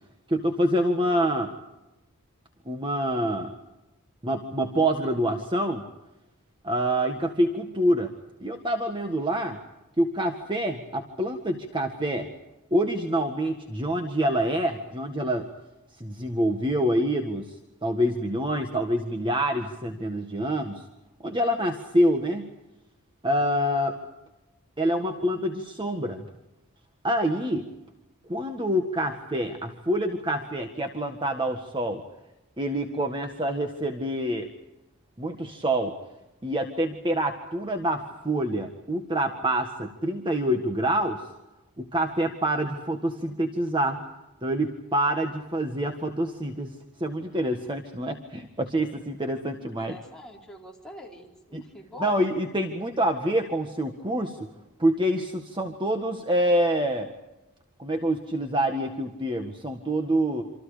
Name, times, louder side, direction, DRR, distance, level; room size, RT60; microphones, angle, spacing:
voice 1, 0.3-1.5 2.6-3.5 4.2-5.8 6.6-8.1 8.4-9.6 10.0-12.3 12.7-15.5 16.0-17.5 17.8-20.8 21.2-22.5 23.2-23.9 24.8-26.2 27.0-27.6 28.3-32.0 32.6-34.5 35.2-35.9 36.4-41.2 41.8-44.0 44.4-46.7 47.0-50.0 51.5-51.6 52.0-54.4 54.8-57.1 57.8-60.4, right 1 dB, 20° right, 4 dB, 1.7 m, -26 dB
voice 2, 49.8-52.3, left 2 dB, 5° left, -2 dB, 4.5 m, -44 dB
27.5 x 27.0 x 5.1 m, 0.99 s
head